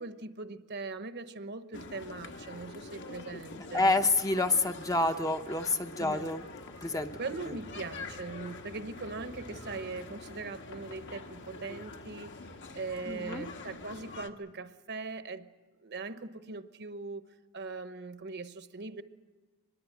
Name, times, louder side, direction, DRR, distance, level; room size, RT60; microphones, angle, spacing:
voice 1, 0.0-3.9 6.0-6.2 7.2-12.3 12.7-15.5 15.8-19.0, right 3 dB, 50° right, 1.0 m, -40 dB
sound 1, 1.7-14.3, left 3 dB, 55° left, 1.4 m, -45 dB
voice 2, 3.7-6.4 6.8-7.2 7.5-7.6 13.1-13.4, left 2 dB, 15° left, 0.8 m, -28 dB
24.5 x 21.0 x 8.1 m
head